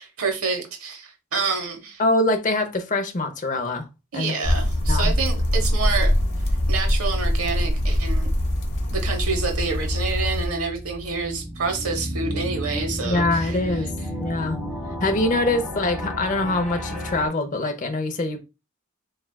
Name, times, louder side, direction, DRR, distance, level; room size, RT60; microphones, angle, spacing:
voice 1, 0.0-2.0 4.1-6.1 6.7-8.3 8.9-13.9, right 4 dB, 85° right, 0.9 m, -28 dB
voice 2, 2.0-3.9 4.1-4.4 4.9-5.1 13.0-13.9 14.2-14.6 15.0-18.4, left 2 dB, 40° left, 0.7 m, -24 dB
sound 1, 4.4-10.5, left 1 dB, 60° left, 1.0 m, -22 dB
sound 2, 10.3-17.3, equal, ahead, 0.9 m, -31 dB
6.5 x 2.3 x 2.2 m
head